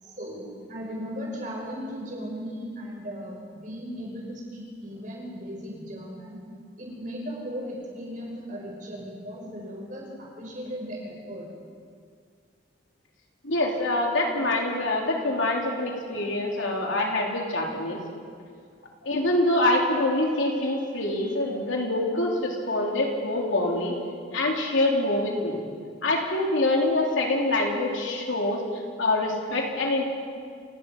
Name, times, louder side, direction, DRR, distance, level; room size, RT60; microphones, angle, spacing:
voice 1, 0.0-6.4 6.8-11.5, equal, 40° right, -2 dB, 6.2 m, -37 dB
voice 2, 13.4-18.0 19.0-24.0 24.3-25.6 26.0-30.1, left 2 dB, 85° left, 0 dB, 3.5 m, -25 dB
28.5 x 16.5 x 5.5 m, 2.1 s
head